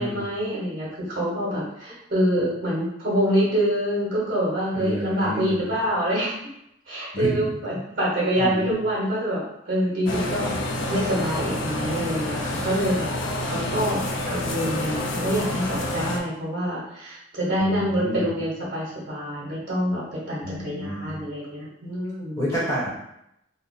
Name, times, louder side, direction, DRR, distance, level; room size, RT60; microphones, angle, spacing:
voice 1, 0.0-6.4 6.9-13.1 13.4-22.4, equal, 50° right, -7 dB, 1.1 m, -26 dB
voice 2, 4.8-5.6 7.1-7.5 8.4-8.7 17.6-18.3 20.4-21.2 22.3-22.9, equal, 15° left, -7 dB, 1.1 m, -29 dB
sound 1, 10.1-16.2, left 1 dB, 90° left, 0.5 m, -28 dB
2.7 x 2.1 x 3.9 m, 0.80 s
head